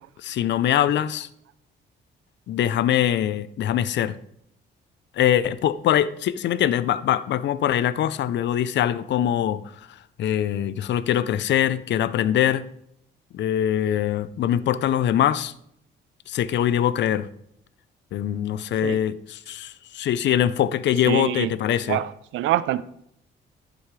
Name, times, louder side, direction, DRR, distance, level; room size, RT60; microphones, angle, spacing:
voice 1, 0.2-1.3 2.5-4.2 5.2-9.6 10.2-12.7 13.3-15.5 16.3-17.3 18.1-22.0, left 11 dB, 65° left, 0.5 m, -23 dB
voice 2, 21.1-21.5 21.9-22.8, right 13 dB, 85° right, 0.5 m, -25 dB
10.0 x 7.6 x 3.2 m
cardioid pair, 90°, 20 cm